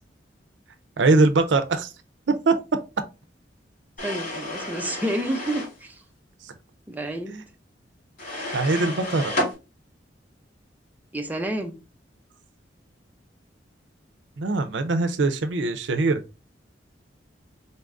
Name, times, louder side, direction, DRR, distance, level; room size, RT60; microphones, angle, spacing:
voice 1, 1.0-1.9 2.3-2.5 6.4-6.5 8.5-9.3 14.4-16.2, right 3 dB, 75° right, 0.5 m, -22 dB
sound 1, 4.0-5.8 8.2-9.5, left 1 dB, 50° left, 2.4 m, -31 dB
voice 2, 4.0-6.0 6.9-7.4 11.1-11.7, right 1 dB, 10° right, 0.5 m, -29 dB
4.1 x 2.6 x 3.4 m
head